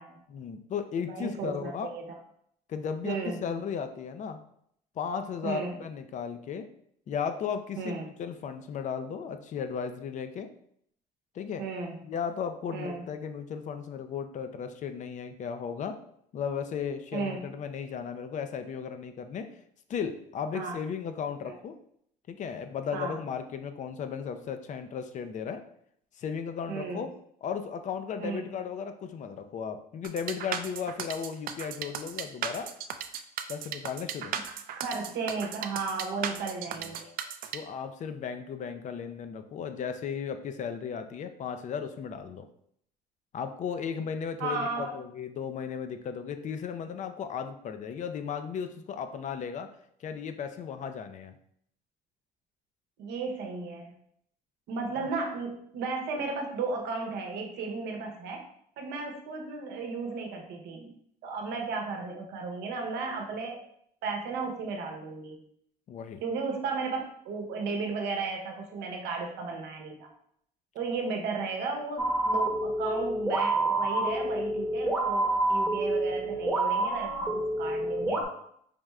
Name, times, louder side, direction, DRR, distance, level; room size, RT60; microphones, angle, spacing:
voice 1, 0.3-1.9 2.7-4.4 5.0-6.7 7.1-10.5 11.3-11.6 12.0-16.0 16.3-19.5 19.9-21.8 22.3-25.6 26.2-27.1 27.4-32.7 33.5-34.3 36.8-36.9 37.5-42.5 43.3-49.7 50.0-51.4 55.0-55.1 65.9-66.2 78.1-78.3, left 7 dB, 45° left, 8 dB, 0.5 m, -35 dB
voice 2, 1.0-2.0 3.0-3.6 5.4-5.8 7.8-8.1 11.6-12.0 12.7-13.0 17.1-17.4 20.5-20.8 21.4-21.5 22.9-23.2 26.7-27.0 28.2-28.4 34.8-37.1 44.4-44.9 53.0-53.9 54.7-58.4 58.8-60.9 61.2-63.6 64.0-65.4 66.2-70.1 70.7-78.2, right 4 dB, 80° right, 2 dB, 0.8 m, -34 dB
sound 1, 30.0-37.6, right 8 dB, 60° right, 0.4 m, -36 dB
sound 2, 72.0-78.2, right 2 dB, 5° right, 0.9 m, -28 dB
5.0 x 3.1 x 2.3 m, 0.69 s
cardioid pair, 110°, 17 cm